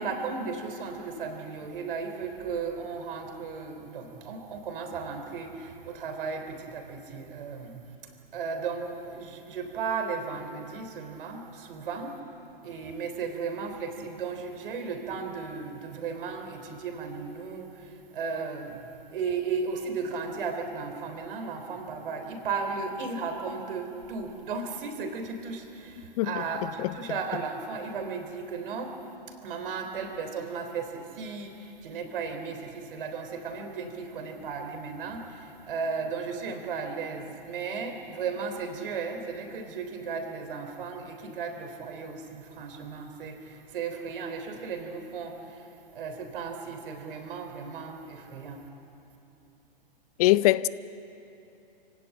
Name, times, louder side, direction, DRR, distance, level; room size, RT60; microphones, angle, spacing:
voice 1, 0.0-7.8 8.0-12.2 12.6-18.8 19.1-48.6, right 5 dB, 65° right, 3.6 m, -35 dB
voice 2, 50.2-50.7, left 17 dB, 40° left, 0.5 m, -21 dB
25.0 x 17.0 x 9.1 m
hypercardioid pair, 120°, 29 cm